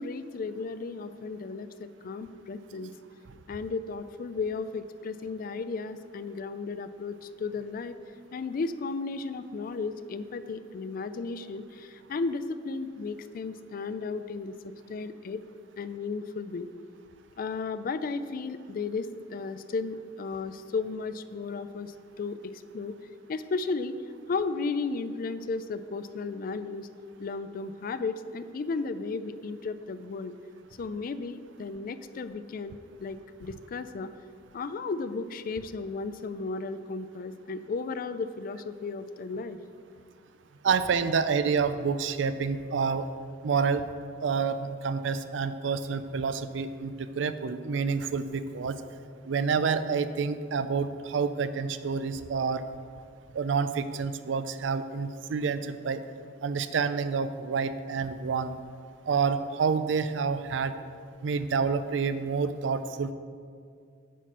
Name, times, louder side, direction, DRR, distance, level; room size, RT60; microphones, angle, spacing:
voice 1, 0.0-2.9 3.5-8.0 8.3-14.5 14.9-15.4 15.8-16.7 17.4-23.0 23.3-24.0 24.3-26.9 27.2-30.3 30.8-34.1 34.5-39.6, left 4 dB, 50° left, 12 dB, 0.4 m, -34 dB
voice 2, 40.6-43.0 43.4-43.8 44.2-48.7 49.3-52.6 53.3-56.0 56.4-58.5 59.1-60.7 61.2-63.1, right 5 dB, 80° right, 12 dB, 0.4 m, -28 dB
9.2 x 4.2 x 6.1 m, 2.2 s
head